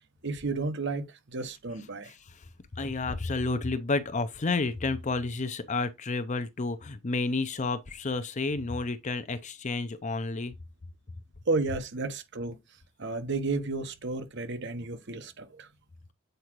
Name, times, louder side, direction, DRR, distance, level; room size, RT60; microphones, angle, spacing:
voice 1, 0.2-2.1 11.5-12.6 13.0-15.7, right 3 dB, 60° right, 1.0 m, -32 dB
voice 2, 2.0-2.5 2.8-10.5, left 3 dB, 35° left, 0.6 m, -31 dB
8.0 x 4.8 x 3.0 m
head